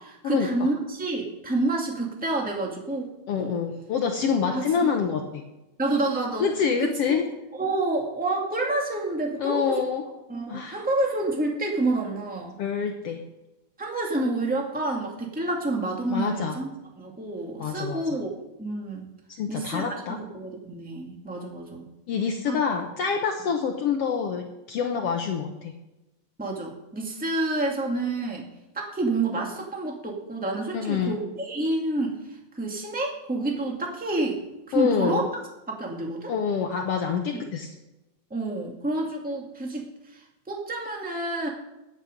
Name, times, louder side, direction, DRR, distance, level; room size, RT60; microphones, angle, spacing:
voice 1, 0.0-3.0 3.4-3.5 4.5-4.9 5.8-6.5 6.8-7.2 7.6-9.8 10.3-12.6 13.8-18.3 18.6-19.0 19.5-21.9 22.5-22.6 26.4-28.5 28.7-32.2 32.5-35.2 35.7-36.3 37.3-37.4 38.3-41.5, right 2 dB, 5° right, 0 dB, 1.2 m, -29 dB
voice 2, 3.3-5.4 6.4-7.2 9.4-10.0 10.5-10.9 12.6-13.2 16.1-16.6 17.6-18.0 19.4-20.2 22.1-25.7 30.7-31.2 34.7-35.2 36.3-37.7, left 6 dB, 85° left, 3 dB, 1.3 m, -26 dB
14.5 x 10.0 x 5.2 m, 0.98 s
omnidirectional pair, 4.1 m